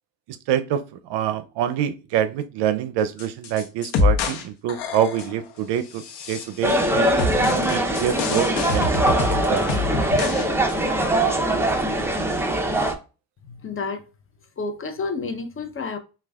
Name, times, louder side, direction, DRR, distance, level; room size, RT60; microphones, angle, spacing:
voice 1, 0.5-0.8 1.1-6.0 6.3-7.1 7.4-9.8, right 9 dB, 70° right, 0.6 m, -26 dB
sound 1, 3.2-4.4 4.7-5.4 5.9-6.8 7.2-10.4 10.7-10.8, left 3 dB, 85° left, 0.9 m, -26 dB
sound 2, 6.6-13.0, right 1 dB, 5° right, 0.6 m, -22 dB
voice 2, 13.5-14.0 14.6-16.0, left 4 dB, 30° left, 0.7 m, -30 dB
5.9 x 2.4 x 2.3 m
supercardioid pair, 85°, 43 cm